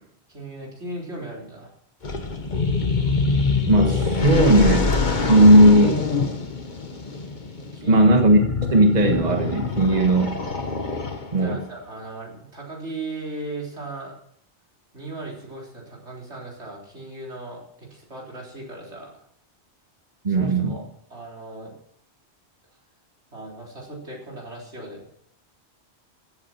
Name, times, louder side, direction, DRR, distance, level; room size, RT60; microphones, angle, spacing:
voice 1, 0.3-1.7 7.6-8.1 11.3-14.1 14.9-19.1 20.3-20.8 21.1-21.8 23.3-25.1, right 2 dB, 85° right, -2 dB, 4.1 m, -37 dB
sound 1, 2.0-11.5, left 4 dB, 45° left, 1.5 m, -25 dB
voice 2, 3.7-4.9 5.2-6.0 7.9-8.4 8.7-10.4 11.3-11.6 20.2-20.8, right 1 dB, 40° right, 3 dB, 1.6 m, -16 dB
15.5 x 8.6 x 5.9 m, 0.68 s
omnidirectional pair, 1.1 m